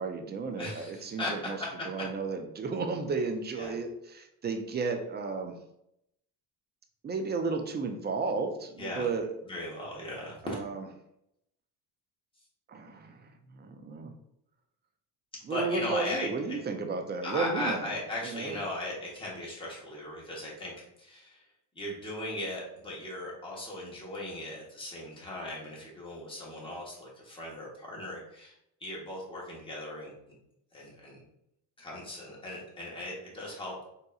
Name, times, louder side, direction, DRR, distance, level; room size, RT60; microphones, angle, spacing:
voice 1, 0.0-1.6 1.9-5.6 7.0-9.3 10.4-10.8 12.7-14.1 15.4-17.9 18.2-18.6, right 4 dB, 25° right, 6 dB, 0.4 m, -33 dB
voice 2, 0.6-1.7 3.6-3.8 8.8-9.1 9.5-10.6 15.5-16.6 17.2-20.7 21.0-21.4 21.7-28.5 28.8-30.4 30.7-31.2 31.8-33.8, left 1 dB, 10° left, -4 dB, 1.3 m, -38 dB
3.7 x 2.8 x 2.3 m, 0.79 s
supercardioid pair, 90°, 43 cm